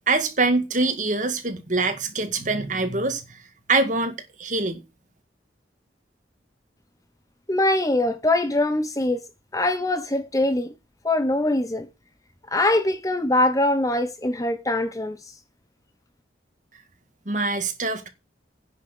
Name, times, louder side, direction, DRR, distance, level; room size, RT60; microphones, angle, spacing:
voice 1, 0.1-3.4 3.7-4.8 17.3-18.1, right 3 dB, 45° right, 2.1 m, -24 dB
voice 2, 7.5-9.2 9.5-10.7 11.0-11.9 12.5-15.2, left 1 dB, 20° left, 0.9 m, -22 dB
10.0 x 6.3 x 6.6 m
head